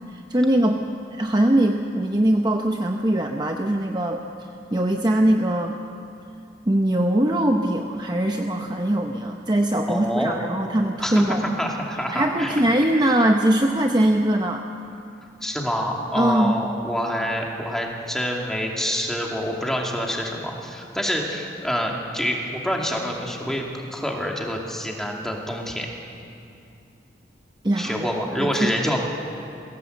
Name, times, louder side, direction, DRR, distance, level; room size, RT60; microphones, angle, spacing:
voice 1, 0.3-0.8 1.1-4.2 4.7-5.8 6.7-11.4 12.1-14.6 16.1-16.6 27.6-28.1 28.3-28.7, right 1 dB, 25° right, 3 dB, 0.8 m, -21 dB
voice 2, 9.9-10.4 11.0-12.6 13.0-13.1 15.4-25.9 27.8-29.0, equal, 5° left, -1 dB, 2.4 m, -27 dB
22.0 x 16.5 x 8.0 m, 2.6 s
head